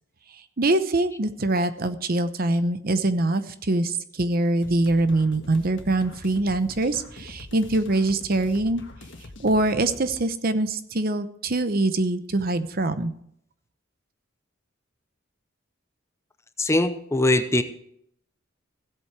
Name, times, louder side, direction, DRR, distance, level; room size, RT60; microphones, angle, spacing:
voice 1, 0.6-8.8 9.4-13.1, right 2 dB, 50° right, 11 dB, 0.8 m, -24 dB
sound 1, 4.6-10.2, left 2 dB, 65° left, 1.5 m, -44 dB
voice 2, 16.6-17.6, left 1 dB, 15° left, 10 dB, 0.7 m, -21 dB
16.0 x 8.3 x 4.6 m, 0.70 s
head